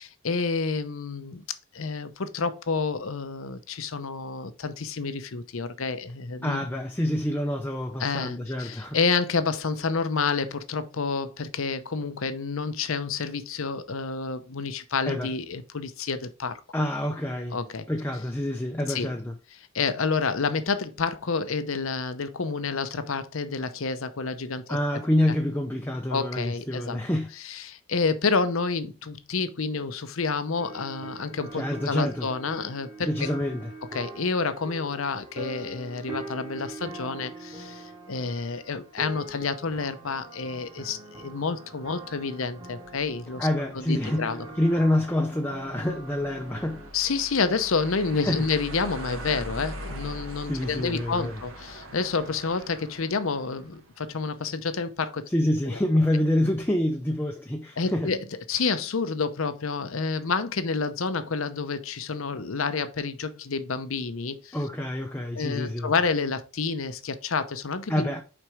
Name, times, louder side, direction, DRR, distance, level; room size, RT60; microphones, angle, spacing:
voice 1, 0.0-1.4 1.7-6.7 8.0-16.6 17.5-17.9 18.9-19.1 19.6-24.8 26.1-27.0 27.4-33.1 33.9-43.5 43.7-44.5 46.9-55.3 55.7-55.8 57.8-64.6 65.3-68.2, left 4 dB, 70° left, 0.7 m, -29 dB
voice 2, 6.4-9.0 15.0-15.3 16.7-17.6 17.9-19.3 24.7-27.3 31.5-32.3 33.1-33.7 43.4-44.3 44.6-46.8 48.2-48.5 50.5-51.4 55.3-58.1 64.5-65.9 67.9-68.2, left 1 dB, 10° left, 0.6 m, -27 dB
sound 1, 30.6-46.9, right 2 dB, 20° right, 1.4 m, -43 dB
sound 2, 42.6-54.7, right 1 dB, 70° right, 1.6 m, -42 dB
6.0 x 4.5 x 3.5 m
head